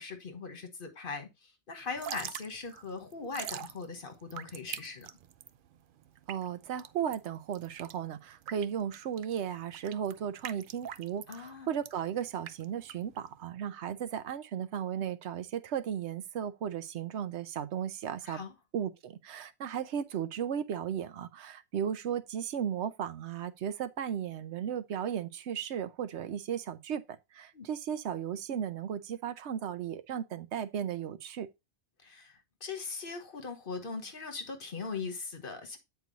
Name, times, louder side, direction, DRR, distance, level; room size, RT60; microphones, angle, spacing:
voice 1, 0.0-5.1 11.3-11.7 18.2-18.5 27.5-27.7 32.0-35.8, left 4 dB, 55° left, 1.5 m, -40 dB
Drip / Trickle dribble, 1.9-13.5, right 10 dB, 60° right, 0.6 m, -45 dB
voice 2, 6.3-18.4 18.7-31.5, right 8 dB, 90° right, 1.0 m, -35 dB
8.2 x 4.6 x 4.0 m
omnidirectional pair, 1.1 m